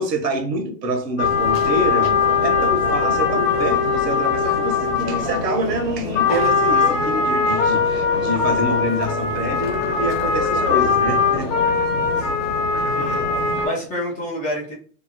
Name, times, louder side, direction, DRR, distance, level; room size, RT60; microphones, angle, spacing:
voice 1, 0.0-2.1 2.4-11.5, right 1 dB, 80° right, 1.0 m, -26 dB
sound 1, 1.2-13.7, left 5 dB, 45° left, 1.0 m, -20 dB
voice 2, 12.9-14.7, left 1 dB, 15° left, 0.5 m, -29 dB
2.7 x 2.3 x 2.7 m
hypercardioid pair, 130°, 48 cm